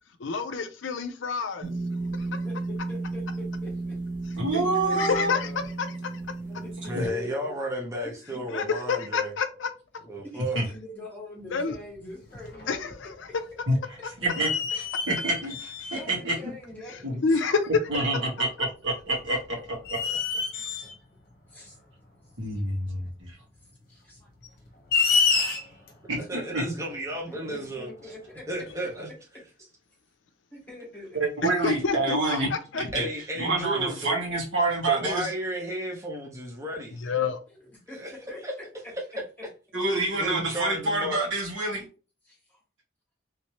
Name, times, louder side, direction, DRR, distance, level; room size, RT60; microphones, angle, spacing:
voice 1, 0.2-1.7 2.2-2.3 4.5-4.6 5.0-5.5 5.8-6.0 8.5-9.7 11.5-11.7 12.7-13.3 16.9-17.7 31.6-32.2 32.5-33.1 37.0-37.4, left 5 dB, 75° left, 0.5 m, -28 dB
sound 1, 1.6-7.1, right 3 dB, 40° right, 1.1 m, -33 dB
voice 2, 2.2-2.6 2.9-4.0 4.6-5.7 6.4-7.5 8.0-8.5 10.2-12.7 15.9-17.2 20.5-20.6 21.5-21.8 23.9-24.3 26.6-26.8 27.3-28.5 30.5-31.4 37.9-38.4 42.2-42.6, left 1 dB, 10° left, 1.4 m, -43 dB
voice 3, 4.4-5.3 6.9-7.1 10.5-10.6 13.7-13.8 14.2-14.5 14.7-16.5 17.0-17.2 17.9-19.4 22.4-23.3 26.1-26.6 31.1-32.5 32.9-33.1 33.4-35.3 39.7-41.8, right 2 dB, 75° right, 1.6 m, -27 dB
voice 4, 6.9-9.3 10.0-10.6 25.5-25.8 26.3-27.9 28.5-29.1 32.9-34.2 34.9-37.0 37.9-38.1 38.4-38.5 39.9-41.2, right 1 dB, 15° right, 0.7 m, -33 dB
sound 2, 11.7-11.8 12.3-13.0 13.4-13.5 14.3-16.1 17.1-17.2 19.1-19.3 19.8-20.9 22.8-22.9 24.4-25.9, left 5 dB, 50° left, 0.9 m, -27 dB
3.2 x 3.1 x 2.9 m
head